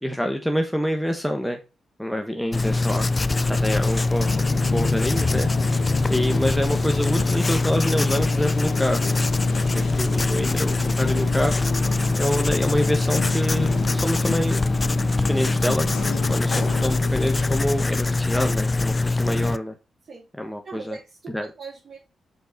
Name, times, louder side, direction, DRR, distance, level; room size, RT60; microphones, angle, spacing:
voice 1, 0.0-1.6 2.0-3.1 3.6-5.5 6.1-9.2 9.7-11.5 12.2-14.6 15.3-15.9 16.3-19.7 20.4-21.0 21.3-21.5, equal, 5° left, 4 dB, 1.3 m, -26 dB
Writing, 2.5-19.6, left 3 dB, 30° left, 0.4 m, -23 dB
sound 1, 3.3-16.2, right 1 dB, 30° right, 4.0 m, -38 dB
sound 2, 4.2-17.6, left 6 dB, 85° left, 1.8 m, -33 dB
voice 2, 20.6-22.0, right 4 dB, 55° right, -6 dB, 3.1 m, -40 dB
6.8 x 4.7 x 3.8 m, 0.28 s
cardioid pair, 65°, 0 cm